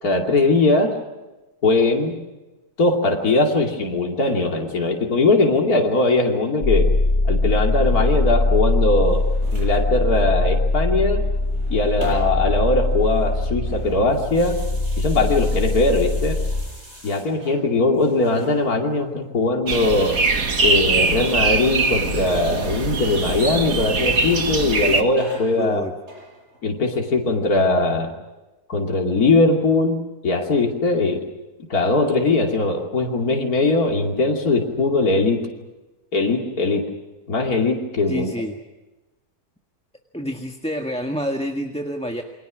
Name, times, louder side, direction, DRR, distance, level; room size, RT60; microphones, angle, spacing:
voice 1, 0.0-1.0 1.6-2.2 2.8-6.9 7.2-9.2 9.5-11.2 11.7-14.6 15.0-16.4 17.0-20.2 20.6-25.8 26.6-28.1 28.7-30.0 30.2-31.2 31.7-35.4 36.1-36.8 37.3-38.3, left 2 dB, 75° left, 1 dB, 3.2 m, -20 dB
sound 1, 6.6-16.6, left 2 dB, 40° left, 4.5 m, -21 dB
sound 2, 8.8-9.8 11.2-12.6 12.8-17.6 17.9-19.1 20.1-23.8 24.2-24.6 25.1-26.8, right 1 dB, 45° right, 7.0 m, -42 dB
sound 3, 19.7-25.0, right 3 dB, 65° right, 2.3 m, -22 dB
voice 2, 25.6-25.9 38.1-38.6 40.1-42.2, equal, 5° left, 4 dB, 1.6 m, -28 dB
29.0 x 24.0 x 6.3 m, 1.1 s
omnidirectional pair, 1.6 m